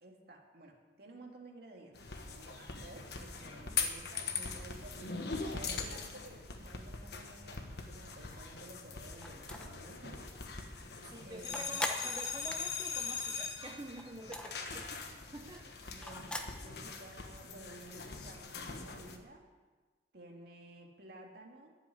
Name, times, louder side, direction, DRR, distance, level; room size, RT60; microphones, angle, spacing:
voice 1, 0.0-10.3 11.2-11.8 14.7-14.8 15.9-16.3 16.6-19.5 20.1-21.7, right 2 dB, 60° right, 1 dB, 2.3 m, -53 dB
sound 1, 1.9-19.2, left 5 dB, 65° left, 1.3 m, -41 dB
sound 2, 9.2-9.8 10.3-10.4 10.6-13.6 13.9-16.6, left 1 dB, 5° left, 1.0 m, -41 dB
voice 2, 11.1-14.8 15.3-16.2, right 2 dB, 25° right, 2 dB, 0.7 m, -48 dB
11.5 x 7.6 x 9.6 m, 1.4 s
head